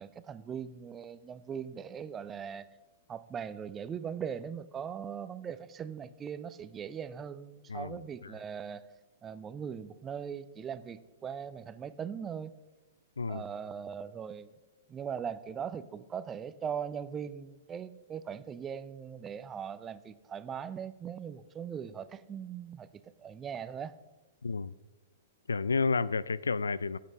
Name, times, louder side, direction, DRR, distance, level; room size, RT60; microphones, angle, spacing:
voice 1, 0.0-2.7 3.1-8.8 9.2-12.5 13.3-14.5 14.9-22.9 23.2-23.9, right 7 dB, 20° right, 0.5 m, -40 dB
voice 2, 7.7-8.4 13.2-13.4 24.4-24.7 25.5-27.0, left 4 dB, 75° left, 0.3 m, -31 dB
16.0 x 8.5 x 3.4 m
figure-of-eight pair, 110°, 0 cm